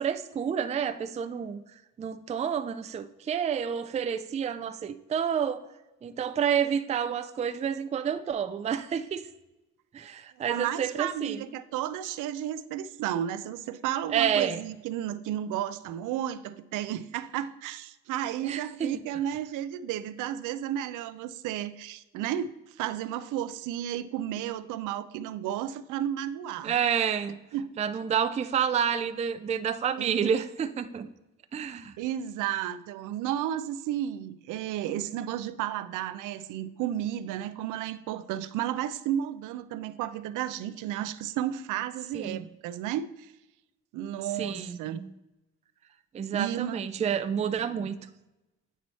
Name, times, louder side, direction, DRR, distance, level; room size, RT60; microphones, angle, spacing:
voice 1, 0.0-1.6 2.0-5.6 6.0-9.3 9.9-11.4 14.1-14.7 18.4-19.0 26.6-27.4 27.8-31.1 31.5-31.9 42.1-42.5 44.4-45.1 46.1-48.0, right 8 dB, 25° right, 10 dB, 0.4 m, -29 dB
voice 2, 10.5-26.8 27.5-27.7 30.0-30.3 32.0-43.3 43.9-45.0 46.3-46.8, right 11 dB, 90° right, 13 dB, 0.5 m, -33 dB
9.0 x 3.1 x 4.1 m, 0.98 s
cardioid pair, 90°, 30 cm